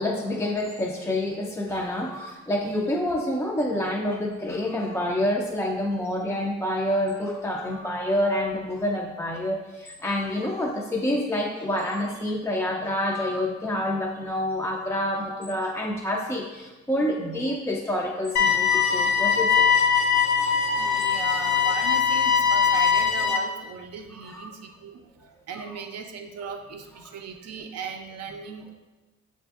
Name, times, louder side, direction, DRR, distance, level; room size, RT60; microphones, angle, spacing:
voice 1, 0.0-19.6 24.1-24.5 25.5-25.6, left 1 dB, 10° left, -2 dB, 0.3 m, -27 dB
sound 1, 18.4-23.4, left 6 dB, 70° left, 0.5 m, -21 dB
voice 2, 20.7-28.7, right 6 dB, 55° right, 5 dB, 0.4 m, -37 dB
5.9 x 2.5 x 2.3 m, 1.2 s
cardioid pair, 90°, 30 cm